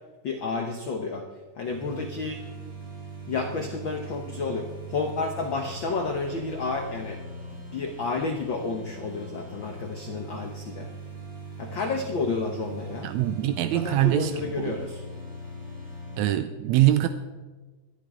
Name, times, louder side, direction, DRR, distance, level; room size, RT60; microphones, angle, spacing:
voice 1, 0.2-1.3 1.6-2.4 3.3-4.6 4.9-7.2 7.7-10.9 11.6-13.1 13.7-15.0, left 4 dB, 80° left, 4 dB, 1.0 m, -31 dB
sound 1, 1.6-16.2, right 2 dB, 35° right, 5.7 m, -40 dB
voice 2, 13.0-14.3 14.6-14.7 16.2-17.1, right 14 dB, 80° right, 9 dB, 1.6 m, -23 dB
22.0 x 11.0 x 3.7 m, 1.3 s
omnidirectional pair, 3.8 m